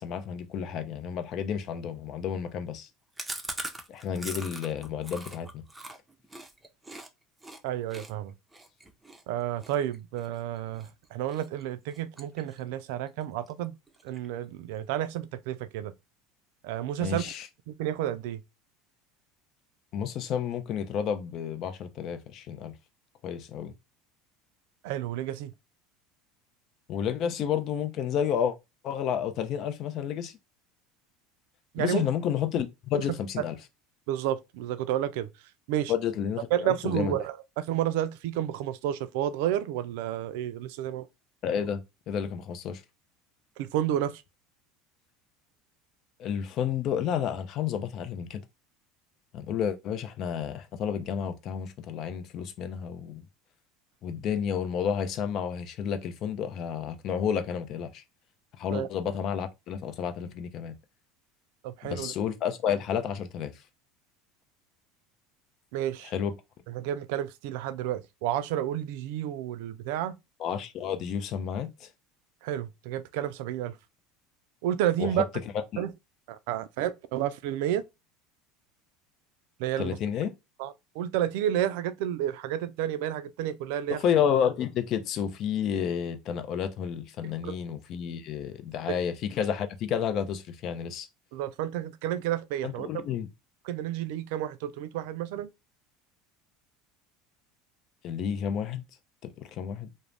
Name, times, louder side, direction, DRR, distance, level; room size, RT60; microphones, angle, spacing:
voice 1, 0.0-2.9 3.9-5.6 17.0-17.5 19.9-22.7 23.2-23.7 26.9-28.5 28.8-30.4 31.8-33.6 35.9-37.1 41.4-42.8 46.2-48.4 49.3-53.2 54.0-58.0 58.6-60.7 61.8-63.5 66.0-66.3 70.4-71.9 75.0-75.2 75.5-75.8 79.8-80.3 83.9-91.1 92.6-93.3 98.0-98.8 99.2-99.9, left 8 dB, 55° left, 0.5 m, -31 dB
Chewing mastication, 3.2-7.1 7.4-7.6 7.9-10.9 11.3-11.6 11.9-12.8 13.1-13.2 13.5-13.6 13.9-14.4, right 2 dB, 10° right, 0.6 m, -41 dB
voice 2, 7.6-8.3 9.3-13.7 14.0-15.9 16.6-17.2 17.7-18.4 24.8-25.5 31.7-32.1 34.1-35.3 35.7-35.9 36.5-41.1 43.6-44.2 58.7-58.9 61.6-62.1 65.7-66.1 66.7-70.1 72.4-73.7 74.6-75.2 75.8-75.9 76.3-77.8 79.6-80.0 80.6-84.0 87.4-87.6 91.3-92.9 93.7-95.5, right 11 dB, 70° right, 0.3 m, -31 dB
2.4 x 2.0 x 3.2 m
hypercardioid pair, 85°, 0 cm